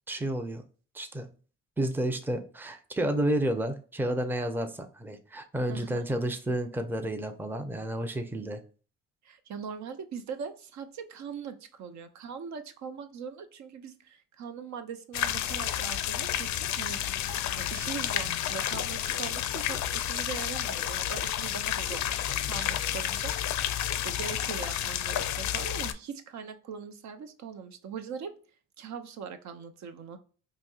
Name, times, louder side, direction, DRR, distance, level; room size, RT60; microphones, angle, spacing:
voice 1, 0.1-0.6 0.9-1.3 1.8-8.6, right 1 dB, 5° right, 0.5 m, -31 dB
voice 2, 5.7-6.0 9.2-17.0 17.6-23.6 24.0-28.3 28.8-30.2, right 6 dB, 65° right, 0.6 m, -41 dB
sound 1, 15.1-25.9, left 11 dB, 70° left, 0.5 m, -31 dB
4.1 x 2.8 x 2.4 m
cardioid pair, 90°, 30 cm